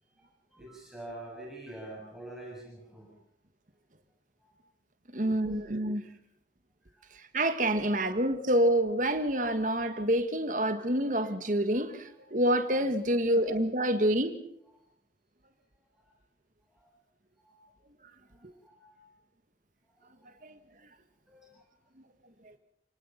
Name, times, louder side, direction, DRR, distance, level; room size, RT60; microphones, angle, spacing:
voice 1, 0.0-3.1 4.4-4.6 5.2-5.6 6.1-6.2 6.9-7.1 12.1-12.2 13.3-13.4 14.7-14.8 16.0-16.1 16.7-16.9 17.4-17.6 18.3-19.1 19.8-20.3 21.3-21.7, right 1 dB, ahead, 6.8 m, -48 dB
voice 2, 5.1-6.0 7.3-14.4 20.4-20.5, right 1 dB, 45° right, 1.8 m, -27 dB
28.5 x 19.0 x 5.9 m
head